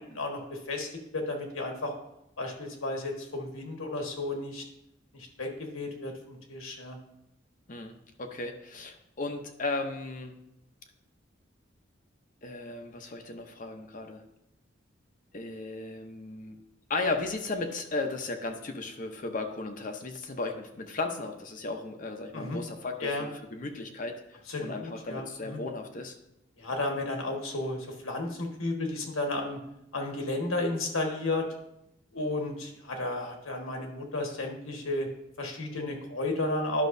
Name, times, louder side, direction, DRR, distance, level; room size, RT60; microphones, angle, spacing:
voice 1, 0.1-1.9 2.4-4.6 5.1-7.0 22.3-22.6 23.0-23.3 24.5-25.6 26.6-29.6 29.9-31.5 32.1-35.1 35.4-36.9, left 2 dB, 85° left, 2 dB, 1.5 m, -33 dB
voice 2, 7.7-10.3 12.4-14.2 15.3-16.6 16.9-24.1 24.6-26.2, left 3 dB, 40° left, 5 dB, 0.7 m, -35 dB
11.0 x 6.1 x 2.7 m, 0.82 s
head